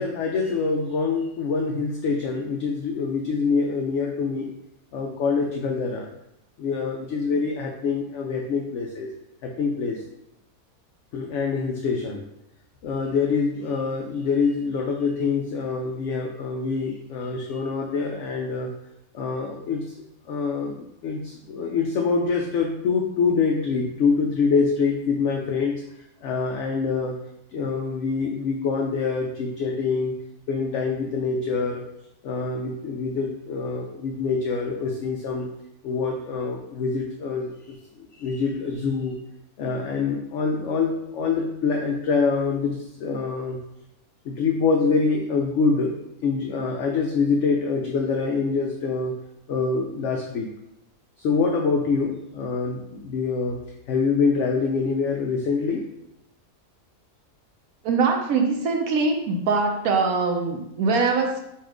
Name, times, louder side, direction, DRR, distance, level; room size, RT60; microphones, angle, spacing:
voice 1, 0.0-4.5 4.9-6.1 6.6-9.1 9.4-10.0 11.1-12.2 12.8-18.7 19.1-19.8 20.3-25.8 26.2-27.2 27.5-30.2 30.5-31.8 32.2-35.5 35.8-39.2 39.6-43.6 44.3-45.9 46.2-49.2 49.5-50.5 51.2-53.6 53.9-55.8, left 4 dB, 65° left, 1 dB, 0.8 m, -25 dB
voice 2, 57.8-61.4, right 4 dB, 75° right, 3 dB, 1.1 m, -22 dB
4.3 x 2.5 x 4.7 m, 0.83 s
omnidirectional pair, 1.6 m